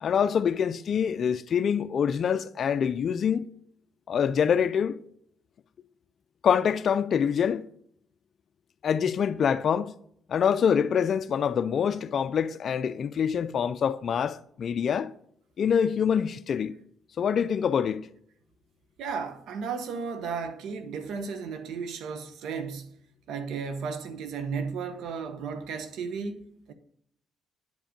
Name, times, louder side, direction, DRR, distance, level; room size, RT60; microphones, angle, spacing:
voice 1, 0.0-3.4 4.1-5.0 6.4-7.7 8.8-9.9 10.3-15.1 15.6-16.7 17.2-18.1, left 7 dB, 55° left, 0.4 m, -25 dB
voice 2, 19.0-23.0 23.3-26.7, right 5 dB, 80° right, 1.0 m, -34 dB
9.7 x 5.2 x 5.2 m
cardioid pair, 90°, 0 cm